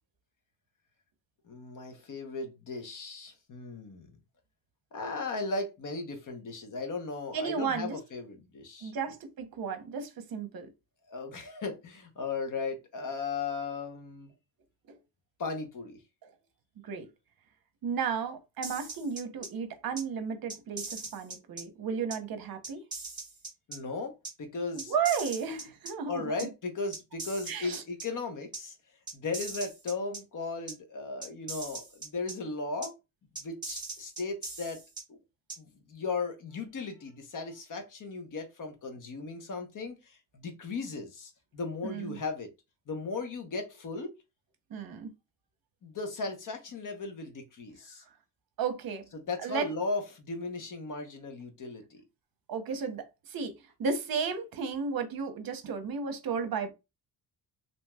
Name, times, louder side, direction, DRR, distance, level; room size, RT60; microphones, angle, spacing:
voice 1, 1.4-4.2 4.9-8.9 11.1-14.3 15.4-16.0 23.7-24.9 26.1-28.7 29.1-32.9 33.4-34.8 35.1-35.2 35.6-42.5 42.9-44.1 45.8-48.0 49.1-52.0, left 3 dB, 50° left, 0.9 m, -36 dB
voice 2, 7.3-8.0 8.8-10.7 14.9-15.0 16.8-17.1 17.8-22.8 24.8-26.5 27.5-27.8 41.8-42.2 44.7-45.1 48.6-49.1 49.4-49.7 52.5-56.7, right 6 dB, 60° right, 0.8 m, -33 dB
sound 1, 18.6-19.5 20.0-20.1 20.5-21.6 22.1-22.2 22.6-23.8 24.2-24.3 24.8-25.9 26.4-26.5 26.9-28.1 28.5-28.6 29.1-30.2 30.7-30.8 31.2-32.3 32.8-32.9 33.3-35.0 35.5-35.6, right 3 dB, 10° right, 1.6 m, -40 dB
3.1 x 2.7 x 2.2 m
cardioid pair, 105°, 41 cm